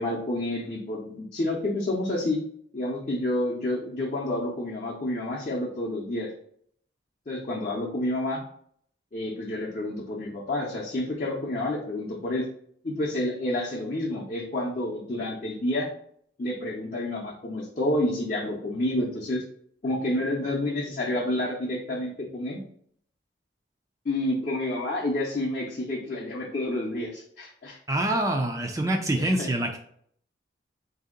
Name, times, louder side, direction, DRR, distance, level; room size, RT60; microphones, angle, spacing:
voice 1, 0.0-2.4 2.7-6.3 7.3-8.4 9.1-12.4 12.8-15.9 16.4-19.4 19.8-22.6 24.0-27.8 29.2-29.5, left 1 dB, 40° left, -5 dB, 0.6 m, -29 dB
voice 2, 27.9-29.8, right 1 dB, 15° right, 3 dB, 0.3 m, -25 dB
4.2 x 2.7 x 3.7 m, 0.64 s
head